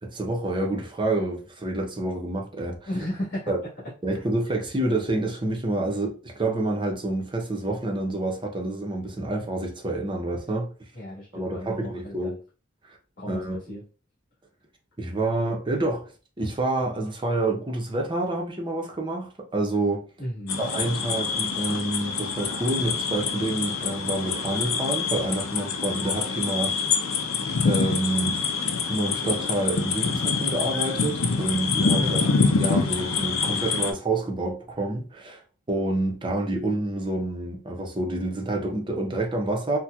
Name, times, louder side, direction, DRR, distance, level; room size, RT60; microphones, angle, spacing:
voice 1, 0.0-2.8 3.5-3.6 4.0-10.7 11.3-12.3 12.9-13.0 13.3-13.6 15.0-16.1 16.4-20.0 20.6-27.1 27.6-28.4 28.9-32.2 32.6-35.4 35.7-39.8, right 2 dB, 25° right, 0.7 m, -28 dB
voice 2, 2.8-3.5 4.1-4.2 10.9-12.4 13.2-13.9 20.2-20.7 32.0-32.4, equal, 50° left, 1.5 m, -34 dB
sound 1, 20.5-33.9, left 5 dB, 90° left, 0.5 m, -26 dB
4.2 x 2.2 x 2.3 m
head